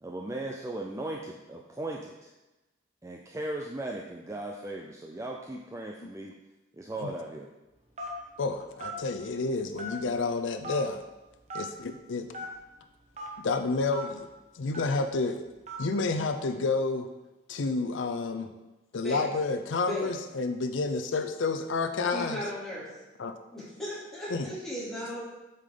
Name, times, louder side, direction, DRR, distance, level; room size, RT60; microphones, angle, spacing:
voice 1, 0.0-2.3 3.0-6.3 6.7-7.5, right 1 dB, 15° right, 0 dB, 0.4 m, -37 dB
Telephone, 8.0-8.3 8.8-9.0 9.8-10.2 10.6-10.8 11.5-11.7 12.3-12.5 13.1-13.3 13.9-14.0 14.7-15.0 15.7-15.9, right 1 dB, 35° right, 1.1 m, -37 dB
voice 2, 8.4-11.0 11.5-12.3 13.4-14.3 14.5-15.4 15.8-17.1 17.5-18.5 18.9-22.4 23.2-23.3 24.3-24.5, left 3 dB, 85° left, 7 dB, 0.5 m, -30 dB
voice 3, 22.1-22.9 23.5-25.2, equal, ahead, -9 dB, 2.8 m, -36 dB
8.2 x 5.5 x 3.8 m, 1.0 s
head